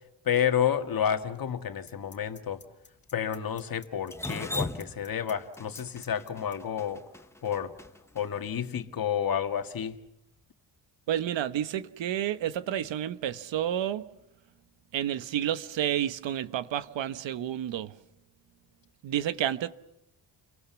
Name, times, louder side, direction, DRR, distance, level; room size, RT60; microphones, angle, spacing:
voice 1, 0.3-2.6 3.1-7.0 7.4-7.7 8.2-10.0, left 8 dB, 50° left, 1.9 m, -30 dB
sound 1, 1.9-6.5, left 4 dB, 25° left, 1.9 m, -51 dB
Drip, 4.1-8.2, left 2 dB, 5° left, 1.2 m, -37 dB
voice 2, 11.1-14.0 14.9-18.0 19.0-19.7, right 11 dB, 80° right, 1.3 m, -30 dB
30.0 x 23.5 x 7.1 m
cardioid pair, 115°, 44 cm